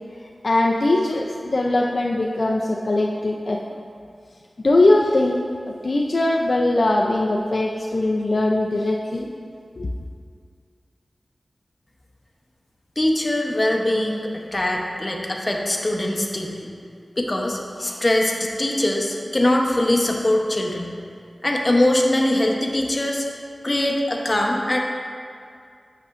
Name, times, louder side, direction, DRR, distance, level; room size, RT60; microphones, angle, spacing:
voice 1, 0.4-3.6 4.6-5.4 5.8-9.3 9.8-9.9, left 2 dB, 60° left, -1 dB, 0.4 m, -20 dB
voice 2, 13.0-16.7 17.2-20.9 21.4-23.3 23.6-24.8, left 1 dB, 30° left, 0 dB, 0.8 m, -22 dB
8.2 x 6.7 x 2.5 m, 2.3 s
wide cardioid pair, 80°, 0 cm